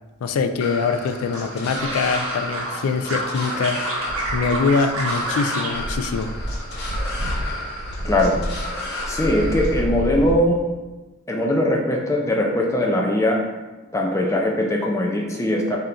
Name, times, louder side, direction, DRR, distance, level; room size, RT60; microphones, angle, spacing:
voice 1, 0.2-4.1 4.3-6.3, left 4 dB, 85° left, 8 dB, 0.3 m, -23 dB
sound 1, 0.6-9.8, left 1 dB, 50° left, 0.8 m, -33 dB
sound 2, 1.3-2.8 3.0-5.7 6.0-6.8 7.1-7.5, right 2 dB, 75° right, 0.8 m, -29 dB
sound 3, 4.1-4.7 5.0-5.2 5.7-10.4, equal, 50° right, 0.5 m, -29 dB
voice 2, 8.0-8.4 9.1-10.6 11.3-13.4 13.9-15.8, left 1 dB, 15° left, -1 dB, 0.4 m, -20 dB
3.6 x 2.8 x 3.8 m, 1.2 s
head